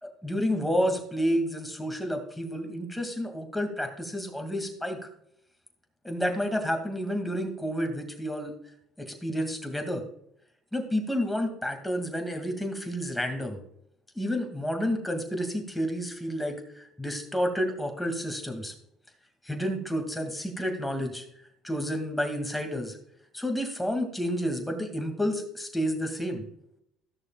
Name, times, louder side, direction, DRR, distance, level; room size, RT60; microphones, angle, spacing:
voice 1, 0.0-5.0 6.0-8.5 9.0-10.0 10.7-13.6 14.1-18.7 19.4-21.3 21.6-23.0 23.3-26.5, equal, 5° left, 4 dB, 2.1 m, -30 dB
14.0 x 6.4 x 2.3 m, 0.71 s
supercardioid pair, 80°, 0 cm